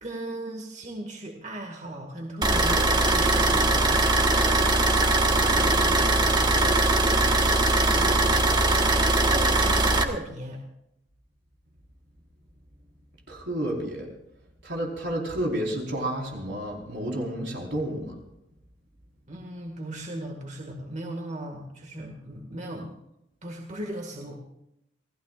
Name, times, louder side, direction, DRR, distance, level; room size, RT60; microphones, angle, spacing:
voice 1, 0.0-4.3 9.3-10.6 19.3-22.9 23.4-24.4, right 1 dB, 45° right, 1 dB, 2.0 m, -37 dB
sound 1, 2.4-10.0, right 2 dB, 25° right, 1.5 m, -21 dB
voice 2, 5.1-8.8 13.3-14.1 14.6-18.2, right 1 dB, 75° right, 0 dB, 4.6 m, -33 dB
28.0 x 17.5 x 2.5 m, 0.82 s
head